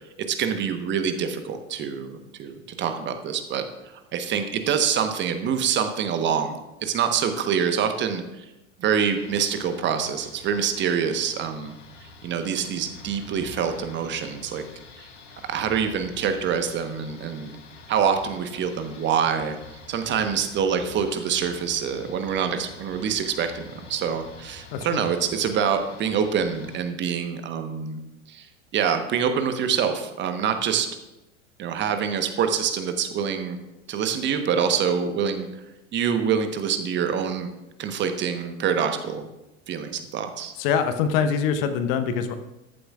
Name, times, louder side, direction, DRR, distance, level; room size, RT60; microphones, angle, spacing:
voice 1, 0.3-3.6 4.1-8.4 8.8-11.7 12.2-14.6 15.0-15.1 15.5-17.6 17.9-19.6 19.9-28.0 28.3-28.5 28.7-30.9 31.6-33.6 33.9-35.5 35.9-37.5 37.8-39.3 39.7-40.5, right 7 dB, 30° right, 7 dB, 1.1 m, -25 dB
sound 1, 9.1-26.8, left 4 dB, 65° left, 2.0 m, -46 dB
voice 2, 24.7-25.0 40.6-42.3, left 7 dB, 45° left, 9 dB, 1.1 m, -24 dB
14.0 x 11.5 x 2.4 m, 0.96 s
figure-of-eight pair, 85°, 39 cm